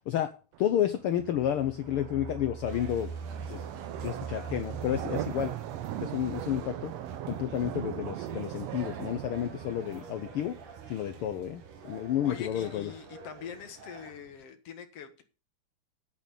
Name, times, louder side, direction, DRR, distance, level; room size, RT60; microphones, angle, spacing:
sound 1, 0.5-14.4, right 13 dB, 70° right, 1.6 m, -41 dB
voice 1, 0.6-3.1 3.5-3.6 4.0-5.5 6.0-6.9 7.3-10.6 10.9-12.9, left 11 dB, 90° left, 10 dB, 1.2 m, -31 dB
sound 2, 1.1-11.8 12.1-12.2 12.5-12.6, right 5 dB, 10° right, 2.8 m, -45 dB
sound 3, 2.7-14.1, right 5 dB, 90° right, 3.3 m, -49 dB
voice 2, 12.2-15.2, left 7 dB, 60° left, 8 dB, 2.2 m, -44 dB
9.1 x 8.2 x 5.3 m, 0.35 s
omnidirectional pair, 3.4 m